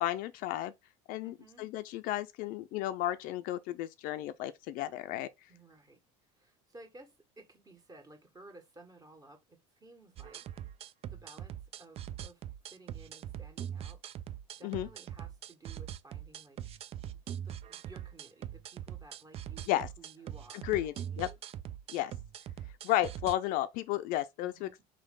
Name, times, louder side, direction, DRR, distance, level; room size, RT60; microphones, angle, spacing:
voice 1, 0.0-0.7 1.1-5.3 14.6-14.9 19.7-19.9 20.5-21.3 21.9-22.1 22.8-24.8, left 14 dB, 65° left, 0.5 m, -33 dB
voice 2, 1.2-1.7 5.5-6.0 6.3-10.5 11.1-12.4 12.7-14.0 14.6-16.6 17.4-21.4 24.4-24.8, right 2 dB, 25° right, 1.7 m, -56 dB
sound 1, 10.2-23.3, right 10 dB, 40° right, 0.4 m, -42 dB
3.7 x 3.3 x 3.7 m
supercardioid pair, 95°, 15 cm